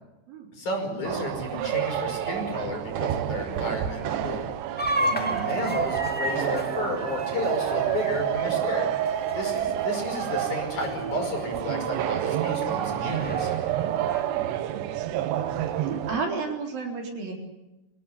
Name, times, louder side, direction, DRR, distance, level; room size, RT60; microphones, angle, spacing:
voice 1, 0.5-4.5 5.0-8.9 9.3-13.5, left 2 dB, 45° left, 3 dB, 6.5 m, -32 dB
sound 1, 1.0-16.2, right 11 dB, 75° right, 3.3 m, -29 dB
sound 2, 4.8-9.8 10.1-10.5 10.8-10.9 11.5-11.6 12.6-14.2, equal, 10° left, 0.4 m, -33 dB
voice 2, 5.2-5.5 14.3-14.5 15.8-17.3, right 4 dB, 55° right, 1 dB, 5.5 m, -32 dB
26.5 x 18.0 x 9.8 m, 0.95 s
omnidirectional pair, 5.0 m